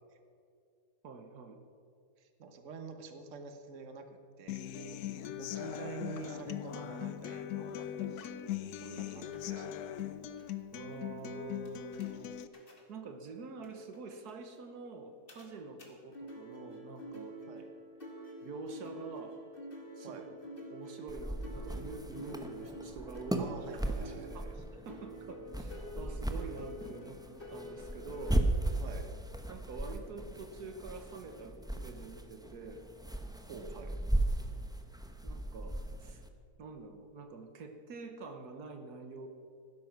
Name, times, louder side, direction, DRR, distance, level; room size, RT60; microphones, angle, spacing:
voice 1, 1.0-1.6 10.7-12.5 12.9-17.3 18.4-19.4 20.0-20.3 20.7-23.5 23.8-27.2 27.5-28.4 29.5-32.8 35.2-36.2 36.6-39.3, right 3 dB, 75° right, 6 dB, 1.7 m, -46 dB
voice 2, 2.2-5.0 5.4-8.5 8.8-10.0 17.5-17.7 20.0-20.3 23.4-24.5 28.8-29.1 33.4-34.0, right 4 dB, 50° right, 6 dB, 1.5 m, -47 dB
Human voice / Acoustic guitar, 4.5-12.5, left 11 dB, 75° left, 1.1 m, -40 dB
sound 1, 9.3-9.4 10.0-10.1 10.4-10.5 10.8-11.0 11.7-12.1 12.5-12.8 13.6-13.7 13.9-14.0 14.3-14.4 15.3-15.5 15.8-15.9 16.1-28.4, equal, 35° left, 2.3 m, -48 dB
sound 2, 21.1-36.3, right 1 dB, 5° right, 0.6 m, -37 dB
16.0 x 12.5 x 5.9 m, 2.4 s
omnidirectional pair, 1.7 m